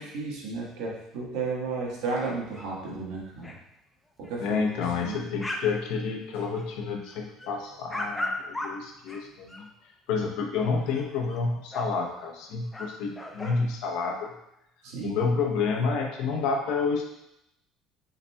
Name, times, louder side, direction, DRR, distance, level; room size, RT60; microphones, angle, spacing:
voice 1, 0.0-3.5 4.2-4.6 5.0-5.3 7.5-7.6 14.8-15.2, right 4 dB, 80° right, -3 dB, 1.4 m, -33 dB
sound 1, 2.2-2.7 3.0-3.1 3.3-3.6 4.2-4.3 4.7-5.7 6.0-6.7 7.1-9.6 10.6-11.4 11.7-11.8 12.4-12.5 12.7-13.6, left 1 dB, 10° left, 0.6 m, -37 dB
voice 2, 4.4-9.7 10.1-14.3 15.0-17.1, left 5 dB, 75° left, 1 dB, 0.8 m, -29 dB
5.4 x 4.0 x 2.3 m, 0.82 s
cardioid pair, 120°, 0 cm